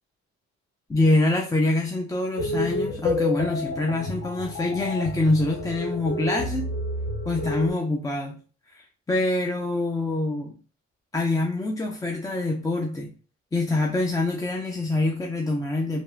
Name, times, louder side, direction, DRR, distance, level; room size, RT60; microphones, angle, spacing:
voice 1, 0.9-6.7 7.3-8.4 8.7-10.5 11.1-13.1 13.5-16.0, left 2 dB, 10° left, 1 dB, 0.4 m, -25 dB
sound 1, 2.4-7.7, left 2 dB, 50° left, 0.8 m, -29 dB
3.4 x 2.4 x 2.3 m, 0.38 s
cardioid pair, 90°, 30 cm